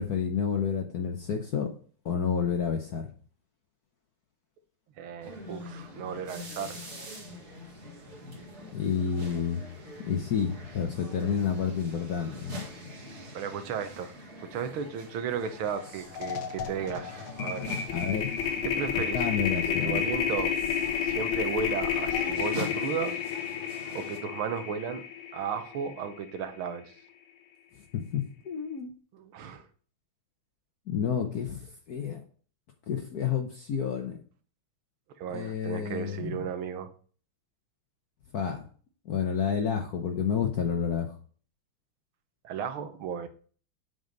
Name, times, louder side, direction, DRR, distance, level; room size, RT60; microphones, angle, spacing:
voice 1, 0.0-1.7 2.0-3.1 8.6-9.6 10.0-12.6 17.9-18.3 19.1-20.0 27.9-28.9 30.9-32.2 32.9-34.2 35.3-36.5 38.3-38.7 39.1-41.2, left 7 dB, 60° left, 4 dB, 1.2 m, -30 dB
voice 2, 5.0-6.8 13.3-14.1 14.5-17.7 18.6-19.3 19.7-20.5 21.0-23.2 23.9-25.0 25.3-26.9 29.1-29.7 35.2-36.9 42.4-43.3, right 7 dB, 90° right, 9 dB, 1.8 m, -34 dB
sound 1, 5.2-24.2, left 1 dB, 35° right, 2.1 m, -44 dB
sound 2, 15.6-15.8 16.1-26.4, left 8 dB, 80° left, 1.8 m, -31 dB
7.8 x 5.2 x 5.2 m, 0.42 s
omnidirectional pair, 2.2 m